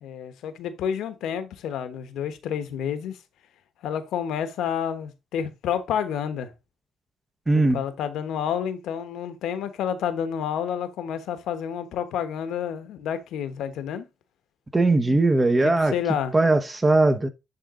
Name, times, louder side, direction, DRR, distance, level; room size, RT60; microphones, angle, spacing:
voice 1, 0.0-3.2 3.8-6.5 7.5-14.0 15.6-16.3, left 8 dB, 80° left, 1.2 m, -29 dB
voice 2, 7.5-7.8 14.7-15.9 16.3-17.3, right 2 dB, 20° right, 1.1 m, -19 dB
9.9 x 3.7 x 3.8 m
cardioid pair, 90°, 0 cm